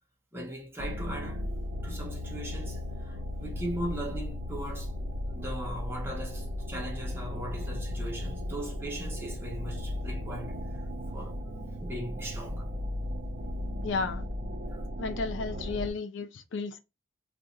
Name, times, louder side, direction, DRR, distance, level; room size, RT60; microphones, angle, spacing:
voice 1, 0.3-1.4 1.8-5.0 5.3-10.6 11.1-11.4 11.8-12.7 14.6-14.8, right 1 dB, 10° right, 0.8 m, -39 dB
sound 1, 0.8-15.9, left 1 dB, 50° right, 0.7 m, -36 dB
voice 2, 13.8-14.3 15.0-16.8, left 4 dB, 70° left, 0.4 m, -33 dB
2.5 x 2.4 x 4.0 m
head